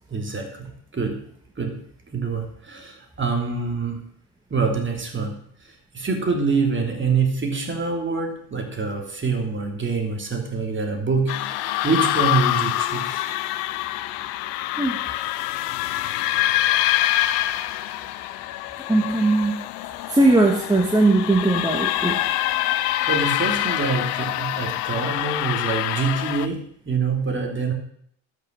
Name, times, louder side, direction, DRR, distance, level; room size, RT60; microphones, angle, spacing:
voice 1, 0.1-1.3 1.6-1.8 2.1-4.0 4.5-13.4 23.1-27.7, right 4 dB, 25° right, 3 dB, 3.0 m, -26 dB
sound 1, 11.3-26.5, left 14 dB, 85° left, 0.8 m, -25 dB
voice 2, 18.9-19.6 20.1-22.2, right 2 dB, 10° right, -1 dB, 1.9 m, -19 dB
12.5 x 6.4 x 6.6 m, 0.66 s
supercardioid pair, 85°, 46 cm